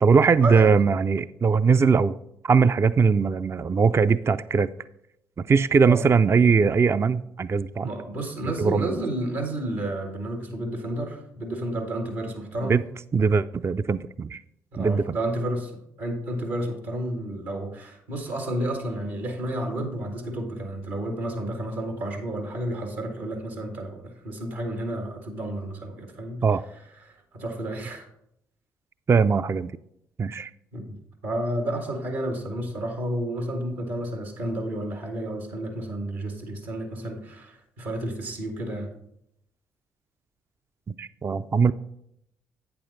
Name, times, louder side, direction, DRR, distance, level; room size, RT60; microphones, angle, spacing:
voice 1, 0.0-2.2 2.4-4.7 5.4-7.9 8.6-8.9 12.6-12.8 13.1-14.4 14.8-15.2 26.4-26.6 29.1-29.7 30.2-30.5 40.9-41.7, right 5 dB, 30° right, 14 dB, 0.4 m, -20 dB
voice 2, 7.8-12.8 14.7-15.7 16.0-26.4 27.1-28.1 30.7-30.9 31.2-38.9, right 1 dB, 75° right, 3 dB, 1.7 m, -31 dB
8.6 x 6.8 x 3.9 m, 0.75 s
hypercardioid pair, 45°, 9 cm